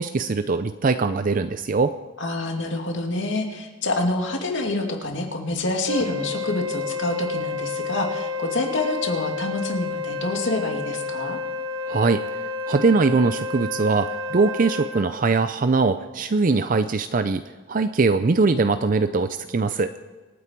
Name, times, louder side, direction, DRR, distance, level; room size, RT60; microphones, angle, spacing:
voice 1, 0.0-1.9 11.9-17.4 17.7-19.9, right 4 dB, 45° right, 10 dB, 0.5 m, -21 dB
voice 2, 2.2-11.4, left 2 dB, 70° left, 2 dB, 2.5 m, -27 dB
Wind instrument woodwind instrument, 5.9-15.0, left 4 dB, 75° right, 1.4 m, -30 dB
26.0 x 9.6 x 4.6 m, 1.3 s
head